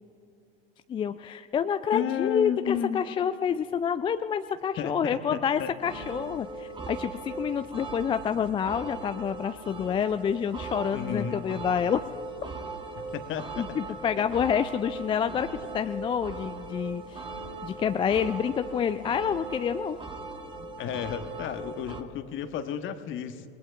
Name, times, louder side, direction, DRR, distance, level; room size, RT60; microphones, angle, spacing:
voice 1, 0.9-12.0 13.6-15.5 15.7-17.2 17.6-20.0, left 7 dB, 15° left, 10 dB, 0.3 m, -28 dB
voice 2, 1.9-3.0 4.8-5.7 10.9-11.4 12.9-13.8 14.2-14.3 20.8-23.4, left 9 dB, 40° left, 9 dB, 1.2 m, -32 dB
sound 1, 5.8-22.0, right 3 dB, 15° right, 1.4 m, -39 dB
28.0 x 19.5 x 2.5 m, 2.7 s
hypercardioid pair, 80°, 31 cm